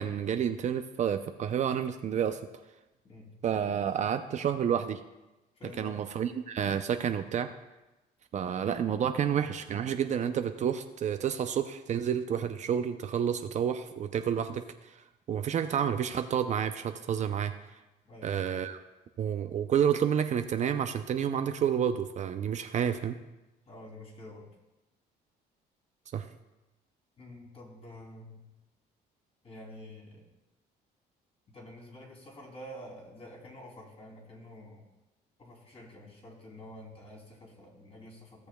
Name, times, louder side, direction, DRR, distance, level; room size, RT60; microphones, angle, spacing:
voice 1, 0.0-2.4 3.4-5.0 5.8-7.5 8.3-14.6 15.3-17.5 18.2-18.8 19.2-23.2 26.1-26.2, right 8 dB, 45° right, 8 dB, 0.5 m, -29 dB
voice 2, 5.6-6.0 18.0-18.5 23.6-24.5 27.2-28.4 29.4-30.2 31.5-34.9 35.4-38.5, left 1 dB, 35° left, -2 dB, 3.0 m, -48 dB
16.5 x 6.7 x 2.3 m, 1.0 s
cardioid pair, 110°, 17 cm